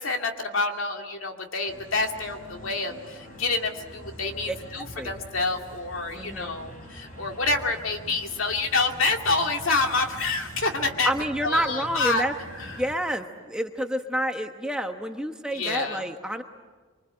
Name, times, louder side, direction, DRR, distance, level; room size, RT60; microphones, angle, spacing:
voice 1, 0.0-11.1 11.4-12.2 15.5-16.0, left 3 dB, 70° left, 3 dB, 2.3 m, -27 dB
sound 1, 1.7-12.9, equal, 40° left, 4.7 m, -44 dB
voice 2, 6.1-6.5 11.0-12.3 12.6-16.4, right 1 dB, 5° right, 5 dB, 1.0 m, -29 dB
25.0 x 24.5 x 7.7 m, 1.4 s
head